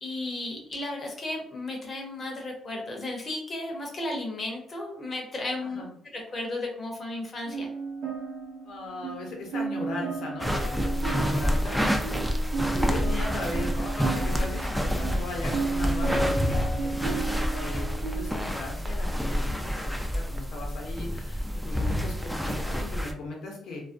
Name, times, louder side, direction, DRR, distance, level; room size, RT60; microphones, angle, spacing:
voice 1, 0.0-5.8 6.1-7.7, left 2 dB, 45° left, 1 dB, 0.7 m, -34 dB
voice 2, 5.6-5.9 8.6-17.2 17.5-23.9, left 2 dB, 75° left, -1 dB, 0.8 m, -38 dB
sound 1, 7.5-18.3, right 4 dB, 75° right, 0.6 m, -34 dB
sound 2, 10.4-23.1, equal, ahead, 0.3 m, -28 dB
2.3 x 2.1 x 2.5 m, 0.66 s
cardioid pair, 90°, 0 cm